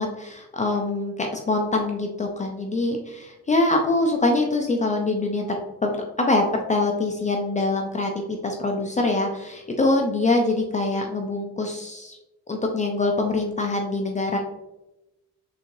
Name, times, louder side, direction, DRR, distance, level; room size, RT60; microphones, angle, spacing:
voice 1, 0.0-12.2 12.5-14.4, left 2 dB, 25° left, 2 dB, 0.4 m, -24 dB
3.6 x 3.1 x 2.5 m, 0.97 s
cardioid pair, 90°, 30 cm